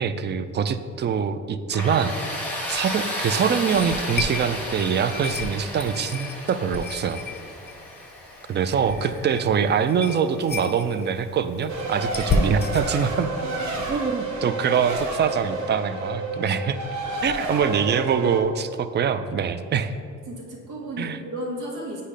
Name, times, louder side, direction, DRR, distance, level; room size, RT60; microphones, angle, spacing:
voice 1, 0.0-2.2 2.7-7.2 8.5-13.3 13.9-16.8 17.2-19.9 21.0-21.2, right 7 dB, 35° right, 11 dB, 0.4 m, -24 dB
Tools, 1.7-10.5, left 1 dB, 5° left, 1.1 m, -34 dB
sound 1, 2.1-12.9, left 3 dB, 35° left, 0.5 m, -33 dB
Race car auto racing, 11.7-18.4, right 2 dB, 70° right, 1.0 m, -30 dB
voice 2, 17.0-17.4 20.3-22.0, right 1 dB, 90° right, -1 dB, 1.3 m, -34 dB
8.2 x 2.8 x 4.9 m, 2.2 s
cardioid pair, 90°, 30 cm